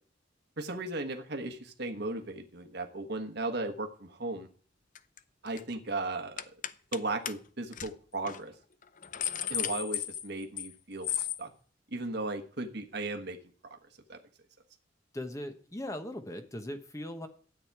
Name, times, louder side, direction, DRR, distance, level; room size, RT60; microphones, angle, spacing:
voice 1, 0.6-4.5 5.4-6.5 6.9-8.5 9.5-11.5 11.9-13.4 13.7-13.8 14.1-14.2, right 2 dB, 60° right, 5 dB, 1.3 m, -36 dB
sound 1, 4.9-5.2 5.5-5.7 6.4-7.0 7.3-7.4 7.7-7.9 8.3-8.4 8.8-10.7 11.0-11.4, left 10 dB, 40° left, 0.6 m, -34 dB
voice 2, 15.1-17.3, left 1 dB, 15° left, 7 dB, 1.0 m, -39 dB
13.0 x 8.9 x 4.7 m, 0.43 s
head